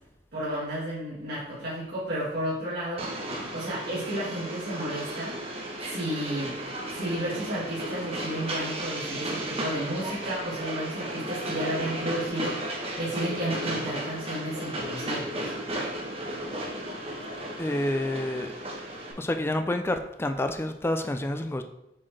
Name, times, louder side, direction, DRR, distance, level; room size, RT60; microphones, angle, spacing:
voice 1, 0.3-3.1 3.5-5.4 5.8-6.6 6.9-15.5, equal, 60° right, -10 dB, 1.9 m, -32 dB
Train, 3.0-19.1, right 1 dB, 35° right, 1.1 m, -34 dB
voice 2, 17.6-18.5 19.2-21.6, left 1 dB, 15° left, 7 dB, 0.4 m, -28 dB
7.3 x 4.3 x 3.2 m, 0.83 s
head